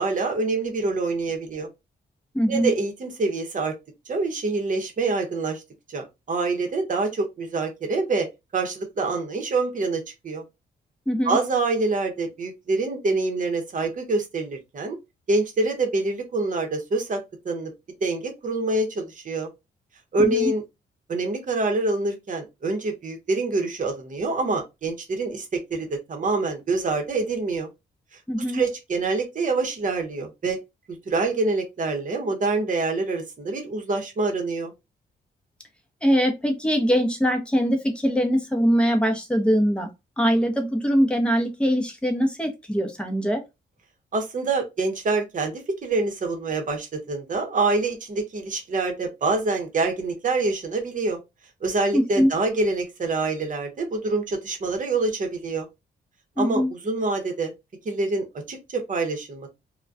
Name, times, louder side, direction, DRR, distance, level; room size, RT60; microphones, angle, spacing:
voice 1, 0.0-1.7 2.5-3.7 4.1-5.6 5.9-8.3 8.5-10.4 11.2-15.0 15.3-17.2 17.4-17.7 18.0-19.5 20.1-20.6 21.1-27.7 28.1-28.2 28.5-30.6 30.9-34.7 44.1-51.2 51.6-55.7 56.4-57.5 57.8-59.5, right 3 dB, 45° right, 0.8 m, -26 dB
voice 2, 2.3-2.7 11.1-11.4 20.2-20.5 28.3-28.6 36.0-39.9 40.2-43.4 51.9-52.3 56.4-56.7, equal, 5° left, 0.7 m, -22 dB
2.2 x 2.2 x 2.5 m
cardioid pair, 95°, 19 cm